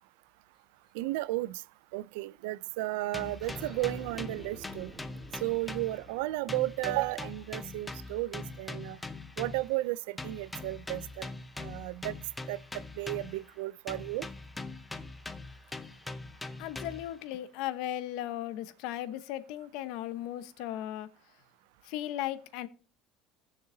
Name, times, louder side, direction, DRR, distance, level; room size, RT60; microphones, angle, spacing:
voice 1, 0.9-1.6 1.9-4.9 5.4-9.0 9.4-11.3 11.6-12.1 12.5-12.6 13.0-14.3, right 18 dB, 90° right, 0.4 m, -33 dB
sound 1, 3.1-6.2 6.5-9.8 10.2-13.5 13.9-17.2, left 3 dB, 10° left, 0.6 m, -42 dB
sound 2, 3.4-8.5, right 2 dB, 20° right, 3.9 m, -51 dB
voice 2, 16.6-21.1 21.8-22.7, left 12 dB, 70° left, 0.9 m, -36 dB
18.5 x 6.6 x 2.7 m
cardioid pair, 150°, 0 cm